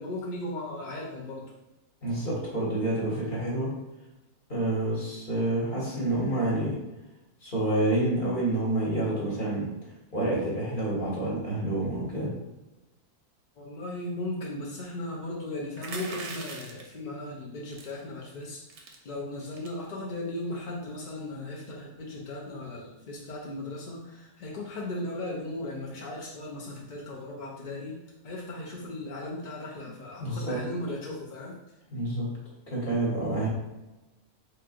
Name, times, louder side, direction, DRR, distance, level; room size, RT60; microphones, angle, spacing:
voice 1, 0.0-1.5 13.5-28.0 28.2-31.6, left 1 dB, 55° left, -3 dB, 0.5 m, -37 dB
voice 2, 2.0-3.7 4.5-6.8 7.4-9.7 10.1-12.3 30.2-30.6 31.9-32.3 32.7-33.5, right 1 dB, 35° left, -5 dB, 1.3 m, -28 dB
sound 1, 15.8-16.9 17.7-18.0 18.4-18.5 18.7-19.0 19.5-19.8, right 3 dB, 60° right, 0.8 m, -40 dB
4.2 x 3.2 x 2.4 m, 1.0 s
omnidirectional pair, 1.6 m